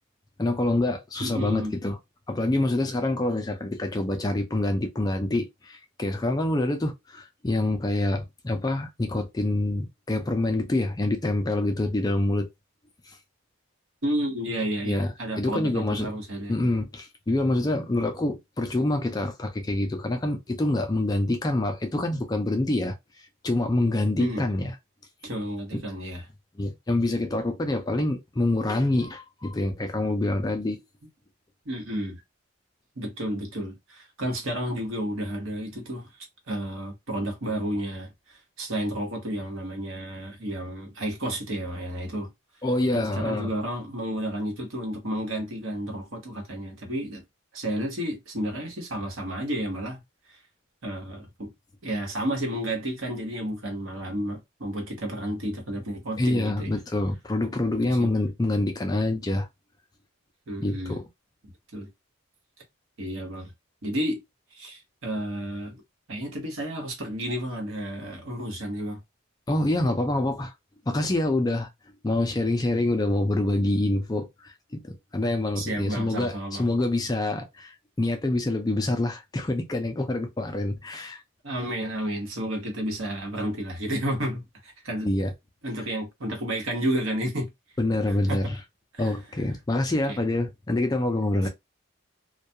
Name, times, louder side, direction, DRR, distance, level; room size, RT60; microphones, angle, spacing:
voice 1, 0.4-2.0 2.3-12.5 13.1-13.2 14.8-16.1 16.5-24.7 26.6-30.8 42.6-43.5 56.2-59.5 60.6-61.0 69.5-70.5 70.9-71.7 72.0-81.2 85.0-85.3 87.8-88.6 89.0-91.5, left 2 dB, 20° left, 0.3 m, -26 dB
voice 2, 1.2-1.7 14.0-16.7 24.2-24.4 25.2-26.2 31.6-32.2 33.0-36.1 36.5-42.3 42.9-47.2 47.5-50.0 50.8-51.5 51.8-56.7 57.9-58.1 60.5-61.0 61.7-61.9 63.0-63.5 63.8-64.2 64.5-65.8 66.1-69.0 75.6-76.6 81.4-85.1 85.6-87.5 88.1-88.6 88.9-89.1 90.1-90.2, right 1 dB, 70° right, 1.1 m, -31 dB
2.2 x 2.2 x 2.7 m
head